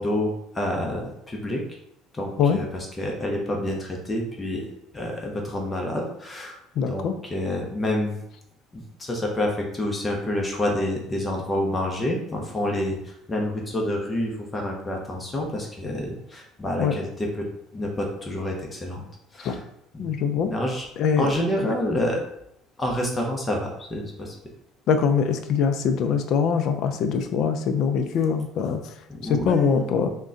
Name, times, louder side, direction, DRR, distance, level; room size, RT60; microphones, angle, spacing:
voice 1, 0.0-1.6 2.1-2.7 3.0-4.6 4.9-6.6 6.9-8.2 8.7-17.1 17.7-19.0 19.3-19.6 19.9-20.1 20.5-20.8 21.2-22.2 22.8-24.3 29.1-29.8, left 1 dB, 20° left, 0 dB, 0.7 m, -28 dB
voice 2, 6.8-7.1 16.8-17.0 19.4-19.5 20.0-20.5 21.0-21.3 21.6-21.7 24.9-28.9 29.2-30.1, left 6 dB, 60° left, 7 dB, 0.4 m, -23 dB
3.7 x 2.2 x 3.7 m, 0.77 s
supercardioid pair, 100°, 0 cm